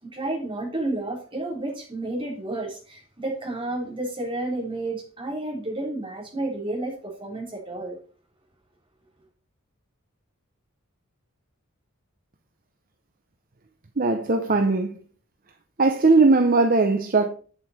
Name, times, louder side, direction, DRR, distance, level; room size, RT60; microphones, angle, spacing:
voice 1, 0.0-8.0, right 2 dB, 25° right, 3.6 m, -31 dB
voice 2, 14.0-15.0 15.8-17.3, right 3 dB, 40° right, 0.8 m, -19 dB
8.7 x 7.9 x 4.3 m
head